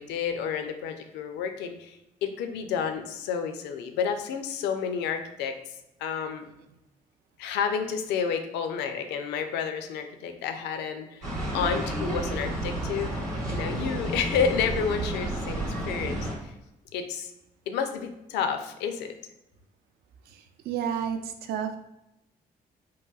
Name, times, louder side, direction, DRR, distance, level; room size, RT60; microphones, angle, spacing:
voice 1, 0.0-5.5 6.0-6.4 7.4-13.1 13.5-16.5 16.9-17.3 17.7-19.1, left 7 dB, 60° left, 6 dB, 0.4 m, -30 dB
sound 1, 11.2-16.3, right 1 dB, 85° right, 0.8 m, -31 dB
voice 2, 20.3-21.8, right 8 dB, 55° right, 7 dB, 0.4 m, -31 dB
4.7 x 2.1 x 2.3 m, 0.87 s
figure-of-eight pair, 40°, 20 cm